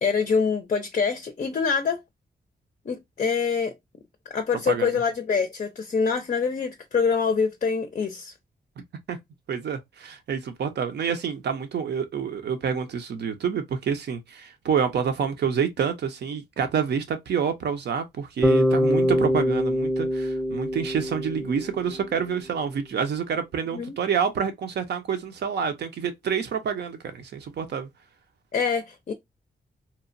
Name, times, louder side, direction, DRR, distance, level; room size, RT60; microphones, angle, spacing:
voice 1, 0.0-2.0 2.9-3.7 4.3-8.3 23.7-23.9 28.5-29.1, left 5 dB, 45° left, 0.4 m, -25 dB
voice 2, 9.5-27.9, right 7 dB, 75° right, 0.6 m, -28 dB
Bass guitar, 18.4-22.5, equal, 5° right, 0.5 m, -24 dB
2.9 x 2.1 x 2.5 m
cardioid pair, 75°, 18 cm